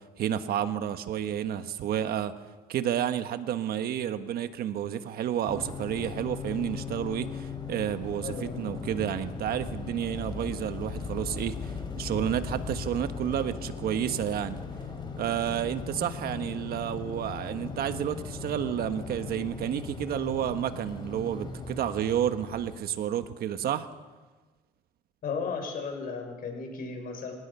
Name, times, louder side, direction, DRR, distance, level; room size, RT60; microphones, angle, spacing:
voice 1, 0.2-2.3 2.7-14.6 15.2-23.9, right 10 dB, 65° right, 10 dB, 1.3 m, -30 dB
sound 1, 5.5-22.8, left 5 dB, 25° left, 3.7 m, -38 dB
voice 2, 8.2-8.6 25.2-27.3, left 5 dB, 60° left, 3 dB, 6.0 m, -35 dB
27.0 x 17.5 x 5.6 m, 1.3 s
cardioid pair, 110°, 17 cm